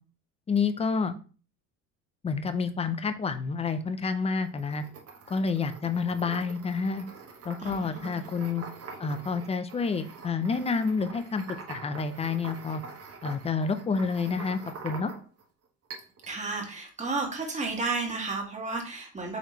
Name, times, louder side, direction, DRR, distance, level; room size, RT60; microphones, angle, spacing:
voice 1, 0.5-1.2 2.2-4.8 5.3-7.1 7.5-8.6 9.0-12.8 13.2-15.1, left 5 dB, 15° left, 10 dB, 0.5 m, -29 dB
sound 1, 4.4-15.4 15.9-16.3, right 4 dB, 35° right, 1.0 m, -45 dB
voice 2, 7.6-8.2 16.3-19.4, right 3 dB, 20° right, 0 dB, 1.6 m, -32 dB
4.9 x 3.4 x 2.8 m, 0.37 s
supercardioid pair, 95°, 39 cm